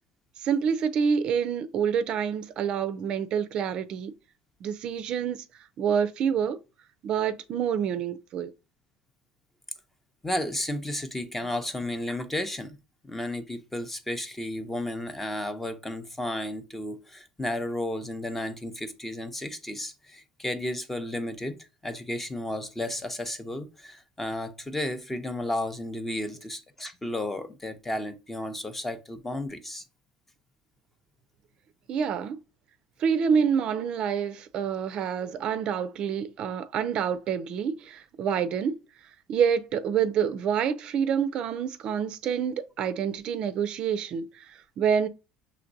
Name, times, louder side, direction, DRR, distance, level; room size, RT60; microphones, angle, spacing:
voice 1, 0.4-4.1 4.6-5.4 5.8-6.6 7.0-8.5 31.9-32.4 33.0-38.8 39.3-45.1, right 7 dB, 50° right, 0.4 m, -27 dB
voice 2, 10.2-12.8 13.0-29.8, left 1 dB, 10° left, 0.6 m, -33 dB
5.8 x 3.0 x 2.6 m
cardioid pair, 120°, 2 cm